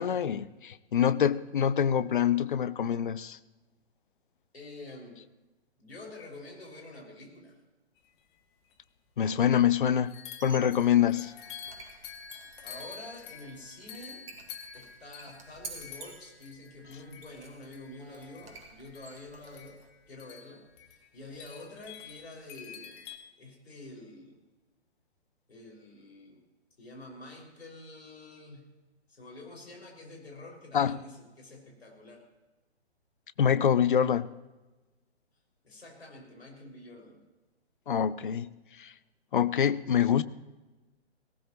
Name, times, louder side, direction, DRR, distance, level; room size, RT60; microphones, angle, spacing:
voice 1, 0.0-3.4 9.2-10.2 10.4-11.3 30.7-31.0 33.4-34.3 37.9-38.5 38.8-38.9 39.3-40.2, left 8 dB, 50° left, 0.7 m, -25 dB
voice 2, 4.5-5.2 5.8-7.6 12.6-14.3 14.7-19.8 20.1-23.0 23.4-24.4 25.5-26.4 26.8-28.7 29.1-32.2 35.6-37.2, left 2 dB, 65° left, 5.9 m, -47 dB
sound 1, 8.4-8.5 8.7-8.8 10.1-23.2, left 7 dB, 25° left, 1.1 m, -48 dB
Squeak, 10.3-19.9, right 3 dB, 55° right, 2.3 m, -51 dB
19.0 x 18.0 x 3.1 m
figure-of-eight pair, 130°, 34 cm